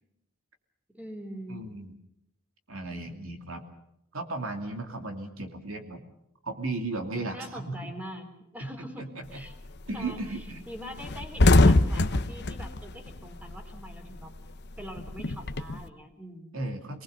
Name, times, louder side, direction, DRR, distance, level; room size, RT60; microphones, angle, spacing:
voice 1, 0.9-1.6 7.3-8.3 8.5-9.5 9.9-14.3 14.8-16.6, equal, 5° right, 5 dB, 3.3 m, -43 dB
voice 2, 1.5-1.9 2.7-3.6 4.1-6.0 6.4-7.9 8.6-8.7 9.0-9.4 9.9-10.6 16.5-17.0, right 2 dB, 70° right, 5 dB, 2.7 m, -35 dB
sound 1, 9.3-9.6 10.0-10.1 10.4-10.6 10.9-13.9 14.2-15.8, left 2 dB, 50° left, 1.0 m, -23 dB
27.0 x 20.0 x 6.8 m, 0.81 s
head